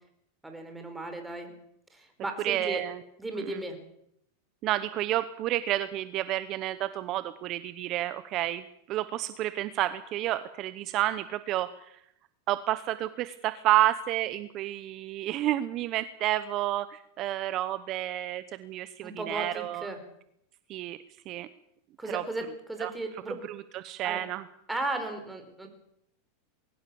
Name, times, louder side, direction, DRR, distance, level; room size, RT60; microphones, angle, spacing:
voice 1, 0.4-1.5 1.9-2.8 3.2-3.8 19.0-20.0 22.0-23.4 24.0-24.2 24.7-25.7, right 2 dB, 5° right, 5 dB, 4.7 m, -35 dB
voice 2, 2.4-3.0 3.5-3.6 4.6-8.6 8.9-11.7 12.5-19.9 20.7-21.0 21.3-21.5 22.1-22.2 22.8-22.9 23.8-24.4, right 14 dB, 40° right, 13 dB, 0.9 m, -30 dB
21.5 x 18.0 x 7.1 m, 0.74 s
supercardioid pair, 130°, 0 cm